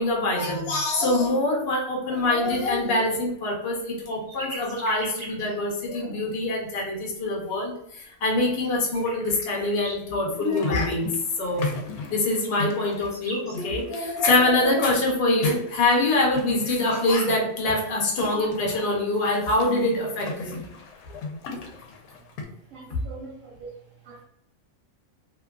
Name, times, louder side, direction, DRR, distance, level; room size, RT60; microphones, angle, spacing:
voice 1, 0.0-11.1 11.4-11.7 12.1-20.6, left 2 dB, 50° left, 0.8 m, -24 dB
sound 1, 3.8-5.8 6.3-6.4 6.8-6.9 7.2-7.4 8.0-10.1 12.0-13.6 14.7-15.0, right 1 dB, 35° right, 0.3 m, -41 dB
sound 2, 10.3-22.4, left 3 dB, 85° left, 1.1 m, -37 dB
voice 2, 22.7-23.7 24.0-24.2, right 3 dB, 70° right, 0.9 m, -42 dB
2.9 x 2.4 x 2.3 m
omnidirectional pair, 1.5 m